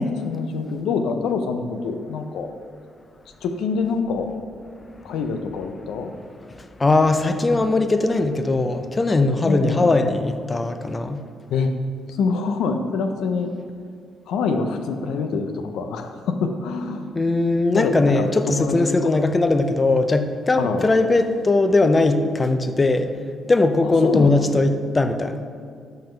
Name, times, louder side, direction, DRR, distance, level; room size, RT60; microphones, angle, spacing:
voice 1, 0.0-2.5 3.4-4.3 5.0-6.1 9.4-9.9 11.5-11.7 12.1-13.5 14.3-17.1 17.7-18.8 19.0-19.2 20.6-20.9 23.8-24.4, left 4 dB, 80° left, 6 dB, 0.6 m, -25 dB
voice 2, 6.8-11.2 17.2-23.1 23.5-25.4, left 2 dB, 25° left, 8 dB, 0.5 m, -19 dB
5.7 x 5.4 x 4.4 m, 2.2 s
cardioid pair, 90°, 0 cm